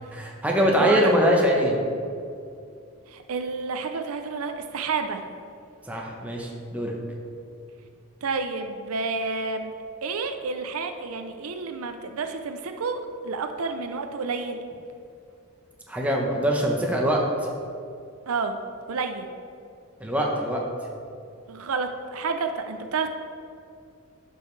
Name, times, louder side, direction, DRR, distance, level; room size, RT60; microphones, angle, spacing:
voice 1, 0.1-1.8 5.9-6.9 15.9-17.2 20.0-20.6, equal, 5° right, -1 dB, 0.9 m, -23 dB
voice 2, 0.8-1.1 3.1-5.2 8.2-9.7 10.0-14.6 18.3-18.6 18.9-19.3 21.5-23.1, right 4 dB, 85° right, 7 dB, 0.5 m, -30 dB
11.5 x 5.4 x 3.2 m, 2.5 s
head